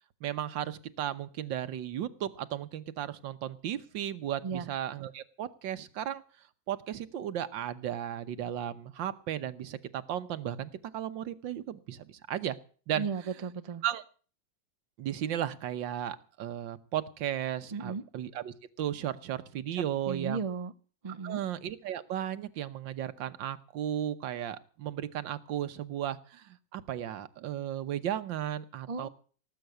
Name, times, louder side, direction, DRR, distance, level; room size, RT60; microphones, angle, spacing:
voice 1, 0.2-6.2 6.7-12.6 12.9-13.1 13.8-14.0 15.0-20.4 21.2-29.1, right 11 dB, 80° right, 13 dB, 1.7 m, -35 dB
voice 2, 12.9-13.8 17.7-18.0 19.7-20.7 21.0-21.4 28.9-29.1, right 5 dB, 60° right, 10 dB, 0.3 m, -35 dB
18.5 x 8.1 x 7.9 m, 0.41 s
omnidirectional pair, 2.0 m